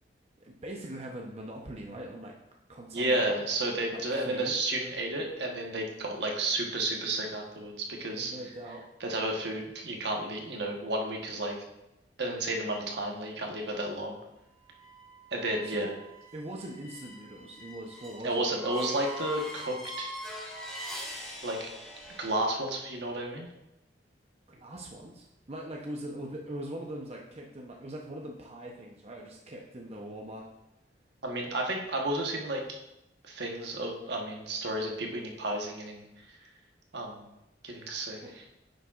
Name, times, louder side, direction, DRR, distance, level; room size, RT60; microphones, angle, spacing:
voice 1, 0.4-2.3 2.7-3.3 3.9-4.5 8.1-8.9 15.6-15.9 16.3-18.5 24.5-30.5 38.2-38.4, right 1 dB, 35° right, -1 dB, 0.7 m, -41 dB
voice 2, 2.9-7.7 8.0-8.3 9.0-11.5 12.2-14.2 15.3-15.9 18.2-20.1 21.4-21.7 22.2-23.5 31.2-32.6 33.2-36.0 36.9-37.2 37.6-38.2, right 1 dB, 70° right, 1 dB, 1.2 m, -32 dB
sound 1, 14.7-22.4, equal, ahead, 1.8 m, -43 dB
9.4 x 6.6 x 2.4 m, 0.89 s
head